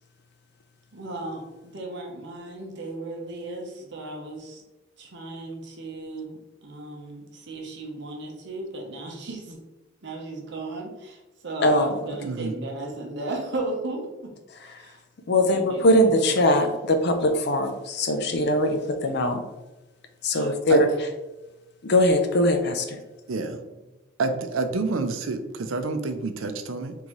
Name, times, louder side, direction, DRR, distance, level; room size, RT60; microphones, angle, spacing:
voice 1, 0.9-4.6 5.0-9.6 10.0-14.3 14.6-15.0 15.4-16.6 19.0-19.2, right 2 dB, 60° right, 0 dB, 0.8 m, -36 dB
voice 2, 11.6-12.0 14.7-14.9 15.3-19.4 20.2-20.9 21.8-23.0, left 1 dB, 55° left, 5 dB, 0.5 m, -21 dB
voice 3, 12.2-12.5 20.3-20.8 23.3-23.6 24.2-26.9, right 3 dB, 90° right, 7 dB, 0.5 m, -28 dB
3.9 x 3.7 x 3.0 m, 1.0 s
head